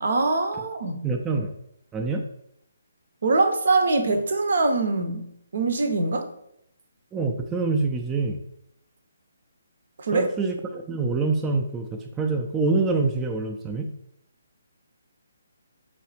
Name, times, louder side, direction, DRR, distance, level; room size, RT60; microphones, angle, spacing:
voice 1, 0.0-1.1 3.2-6.3 10.0-10.3, right 3 dB, 55° right, 7 dB, 0.6 m, -23 dB
voice 2, 1.0-1.5 1.9-2.2 7.1-8.4 10.1-13.9, right 3 dB, 10° right, 2 dB, 0.3 m, -26 dB
4.7 x 3.1 x 2.9 m, 0.74 s
figure-of-eight pair, 140°, 0 cm